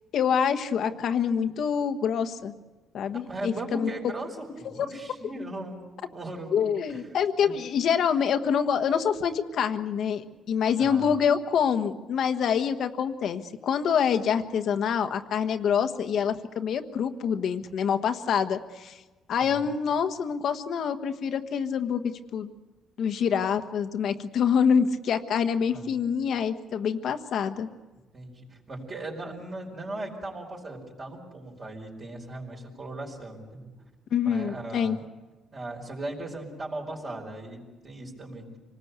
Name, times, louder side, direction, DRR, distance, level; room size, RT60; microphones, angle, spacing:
voice 1, 0.1-2.5 2.9-3.9 4.6-4.7 6.5-19.0 19.3-22.5 23.0-27.7 34.1-35.0, left 7 dB, 60° left, 8 dB, 1.3 m, -26 dB
voice 2, 3.1-5.8 6.1-7.0 7.4-7.5 10.8-11.1 19.4-19.6 25.7-25.9 28.1-33.7 34.2-35.0 35.5-38.6, right 2 dB, 35° right, -3 dB, 4.9 m, -38 dB
26.0 x 19.5 x 8.2 m, 1.2 s
cardioid pair, 120°, 0 cm